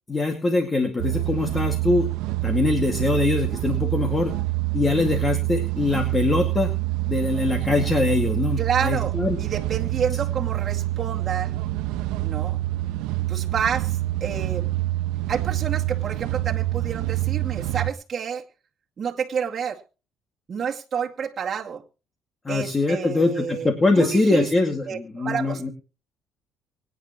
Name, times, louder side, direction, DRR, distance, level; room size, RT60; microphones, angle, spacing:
voice 1, 0.1-2.1 2.4-4.3 4.7-6.7 7.1-9.4 22.5-25.7, left 3 dB, 20° left, 3 dB, 2.2 m, -23 dB
sound 1, 1.0-17.9, right 17 dB, 90° right, 0.8 m, -26 dB
voice 2, 8.6-9.1 9.4-11.6 12.2-12.6 13.3-14.7 15.3-18.4 19.0-19.8 20.5-21.8 22.5-23.7 23.9-24.5 24.9-25.7, right 7 dB, 40° right, -1 dB, 2.3 m, -29 dB
24.5 x 9.6 x 3.1 m, 0.34 s
cardioid pair, 105°, 0 cm